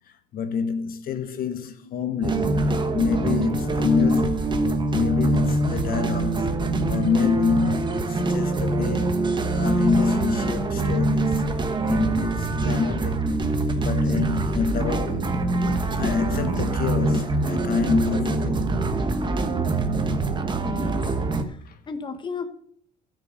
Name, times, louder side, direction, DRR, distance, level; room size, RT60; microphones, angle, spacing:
voice 1, 0.3-2.6 2.9-4.4 4.9-6.5 6.9-9.2 9.5-11.4 11.9-13.2 13.8-15.3 16.0-18.7, left 5 dB, 60° left, 1.3 m, -26 dB
sound 1, 2.2-21.4, right 2 dB, 25° right, 1.3 m, -24 dB
voice 2, 20.6-21.0 21.4-22.5, left 5 dB, 30° left, 1.2 m, -34 dB
13.0 x 6.6 x 6.4 m
cardioid pair, 110°, 17 cm